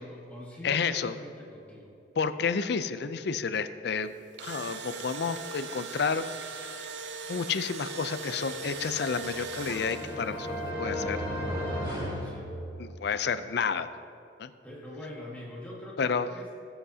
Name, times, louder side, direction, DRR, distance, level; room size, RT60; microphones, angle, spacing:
voice 1, 0.0-1.9 12.2-12.5 14.6-16.5, left 1 dB, 10° left, -5 dB, 1.7 m, -43 dB
voice 2, 0.6-1.1 2.2-4.1 4.4-6.3 7.3-10.5 10.8-11.2 12.8-13.9 14.4-14.5 16.0-16.3, left 5 dB, 60° left, 11 dB, 0.5 m, -30 dB
Engine / Drill, 4.1-10.4, right 3 dB, 70° right, 0.6 m, -39 dB
sound 1, 8.7-13.2, equal, 25° right, 2.9 m, -35 dB
19.5 x 8.0 x 2.8 m, 2.6 s
head